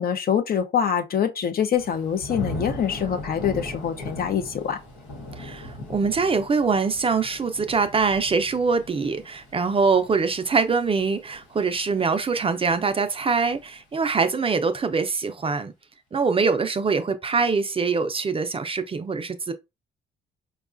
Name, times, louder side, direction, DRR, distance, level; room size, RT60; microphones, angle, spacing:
voice 1, 0.0-4.8, left 8 dB, 50° left, 0.6 m, -25 dB
Thunder / Rain, 1.8-12.7 13.1-13.6, left 1 dB, 85° left, 1.1 m, -39 dB
voice 2, 5.4-15.7 16.1-19.5, right 4 dB, 30° right, 0.5 m, -23 dB
4.6 x 2.3 x 2.4 m
cardioid pair, 90°, 20 cm